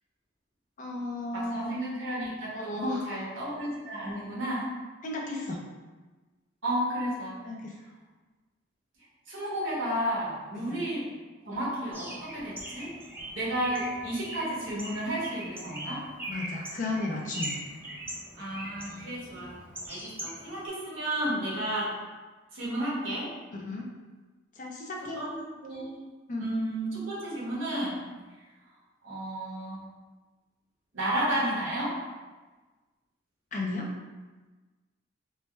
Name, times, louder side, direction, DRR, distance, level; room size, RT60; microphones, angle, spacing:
voice 1, 0.8-1.8 2.5-3.2 5.0-5.6 7.4-7.7 10.5-10.9 16.3-17.6 23.5-23.9 24.6-25.2 26.3-26.5 33.5-33.9, left 2 dB, 40° left, -1 dB, 0.5 m, -34 dB
voice 2, 1.3-4.7 6.6-7.4 9.3-11.1 11.4-12.9 13.3-16.0 18.4-19.5 19.9-22.0 22.5-23.3 25.2-26.0 26.4-28.0 29.0-29.8 30.9-32.0, right 1 dB, 70° right, -6 dB, 1.3 m, -32 dB
Bird, 11.9-20.7, right 1 dB, 10° right, 0.6 m, -41 dB
4.5 x 2.2 x 3.1 m, 1.3 s
head